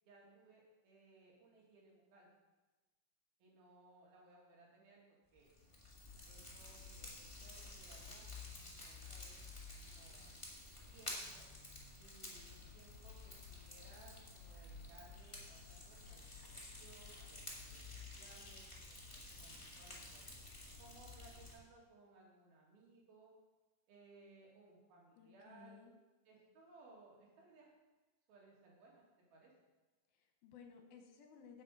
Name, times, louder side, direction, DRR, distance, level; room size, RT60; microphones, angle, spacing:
voice 1, 0.0-2.3 3.4-5.5 6.3-8.3 8.8-9.4 9.8-10.3 10.9-11.4 12.0-20.3 20.8-23.4 23.9-25.9 26.3-27.7 28.3-29.0 29.3-29.5, right 3 dB, 80° right, -3 dB, 4.1 m, -63 dB
Fire, 5.4-21.5, left 2 dB, 15° left, 0.9 m, -52 dB
sound 1, 12.3-18.0, left 8 dB, 45° left, 5.0 m, -61 dB
voice 2, 25.2-25.9 30.1-31.6, left 6 dB, 80° left, 3 dB, 2.9 m, -58 dB
8.7 x 8.1 x 5.4 m, 1.2 s
omnidirectional pair, 4.3 m